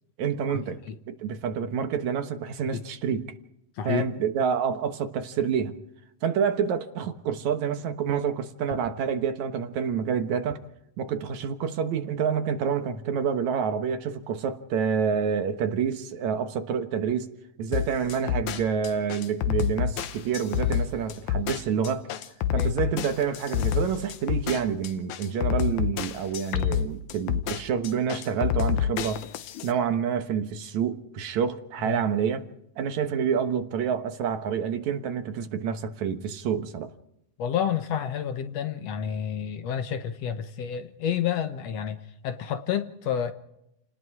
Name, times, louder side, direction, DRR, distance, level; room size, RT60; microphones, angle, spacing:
voice 1, 0.2-0.8 1.1-3.3 3.8-5.7 6.2-10.6 11.0-17.3 17.6-22.1 22.5-29.3 29.6-32.5 32.8-36.9, right 7 dB, 70° right, 2.5 m, -28 dB
sound 1, 17.7-29.7, left 9 dB, 80° left, 2.4 m, -28 dB
voice 2, 37.4-42.0 42.2-43.3, left 9 dB, 65° left, 2.1 m, -29 dB
29.0 x 19.0 x 4.8 m
omnidirectional pair, 3.4 m